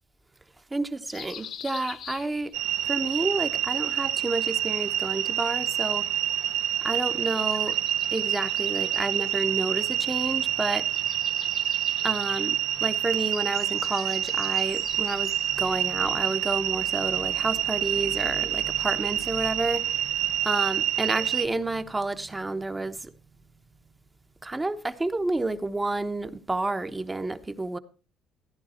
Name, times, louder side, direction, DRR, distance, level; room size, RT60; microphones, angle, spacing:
voice 1, 0.7-2.5 2.9-6.0 6.8-7.8 8.1-10.9 12.0-15.3 15.6-23.1 24.4-27.8, right 2 dB, 15° right, 1.0 m, -30 dB
sound 1, 1.1-2.8 4.3-5.3 7.2-10.2 10.5-15.7, left 8 dB, 55° left, 1.2 m, -45 dB
sound 2, 2.5-21.5, right 11 dB, 80° right, 1.1 m, -27 dB
14.5 x 10.5 x 4.3 m
cardioid pair, 120°, 0 cm